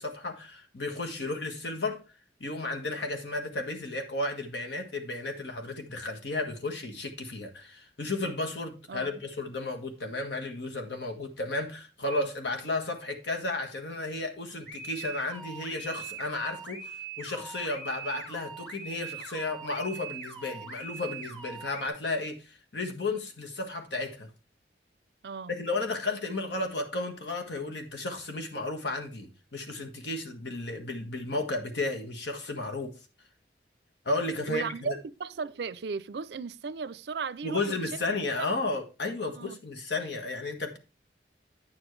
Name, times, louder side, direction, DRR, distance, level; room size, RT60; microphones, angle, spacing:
voice 1, 0.0-2.0 2.4-24.3 25.5-32.9 34.0-35.0 37.4-40.8, left 2 dB, 80° left, 1.5 m, -33 dB
sound 1, 14.7-21.9, right 5 dB, 5° left, 1.3 m, -42 dB
voice 2, 25.2-25.5 34.5-37.8 38.4-38.5 39.2-39.6, right 5 dB, 70° right, 0.4 m, -36 dB
9.3 x 7.1 x 3.2 m
head